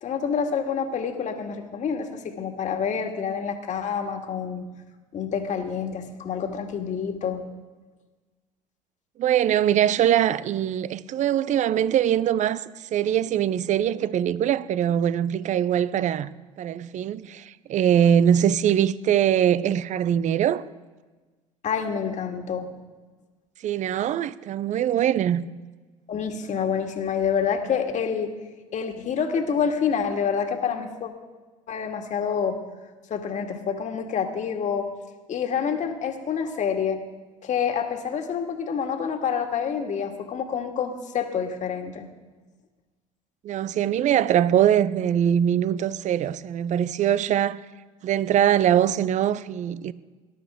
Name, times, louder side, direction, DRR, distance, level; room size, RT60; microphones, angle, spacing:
voice 1, 0.0-4.6 5.1-7.5 21.6-22.7 26.1-28.4 28.7-31.1 31.7-32.6 33.1-34.9 35.3-37.0 37.4-42.1, left 7 dB, 45° left, 2.0 m, -27 dB
voice 2, 9.2-16.3 16.6-20.7 23.6-25.5 43.4-47.7 48.0-49.9, right 10 dB, 45° right, 0.6 m, -22 dB
19.0 x 12.0 x 3.7 m
hypercardioid pair, 65°, 17 cm